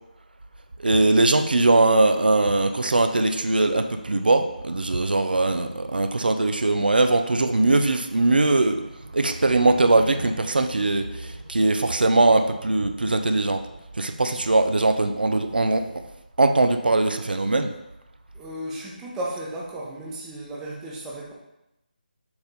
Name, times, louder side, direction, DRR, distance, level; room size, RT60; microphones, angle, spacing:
voice 1, 0.8-8.8 9.1-13.6 14.0-15.8 16.4-17.7, right 2 dB, 70° right, 7 dB, 0.6 m, -21 dB
voice 2, 18.3-21.3, right 1 dB, 10° right, -5 dB, 0.8 m, -34 dB
7.0 x 3.4 x 4.0 m, 0.89 s
figure-of-eight pair, 155°, 5 cm